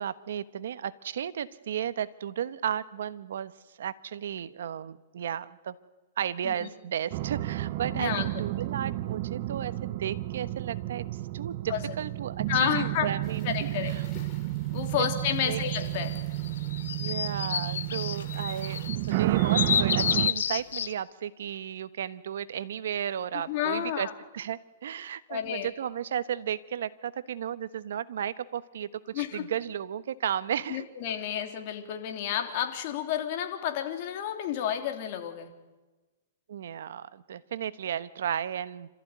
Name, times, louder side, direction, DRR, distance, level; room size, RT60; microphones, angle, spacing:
voice 1, 0.0-3.5 3.8-5.8 6.2-11.0 11.3-14.1 15.0-15.1 15.4-15.6 17.0-24.1 24.3-28.9 29.1-30.9 36.5-38.9, right 9 dB, 75° right, 14 dB, 1.2 m, -34 dB
sound 1, 7.1-20.3, right 17 dB, 45° right, 0.9 m, -31 dB
voice 2, 7.9-8.3 11.7-11.9 12.5-13.1 13.4-13.9 14.7-16.1 23.5-24.1 25.3-25.7 29.1-29.4 30.7-35.5, left 10 dB, 45° left, 4 dB, 3.3 m, -30 dB
sound 2, 13.2-18.9, left 6 dB, 30° left, 4.5 m, -54 dB
sound 3, 15.7-20.9, left 8 dB, 85° left, 1.0 m, -30 dB
27.0 x 14.5 x 9.4 m, 1.2 s
hypercardioid pair, 145°, 0 cm